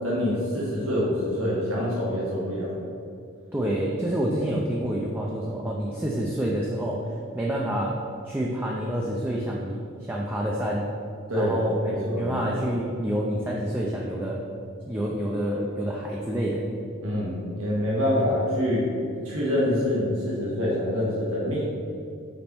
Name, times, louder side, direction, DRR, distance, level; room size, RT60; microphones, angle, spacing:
voice 1, 0.0-2.9 11.3-11.5 11.8-12.4 17.0-18.9 19.2-21.7, left 1 dB, 80° right, -6 dB, 1.6 m, -26 dB
voice 2, 3.5-7.0 7.3-8.0 8.2-10.9 11.3-14.4 14.9-16.6, right 1 dB, 10° right, -3 dB, 0.4 m, -28 dB
5.4 x 5.3 x 4.4 m, 2.5 s
head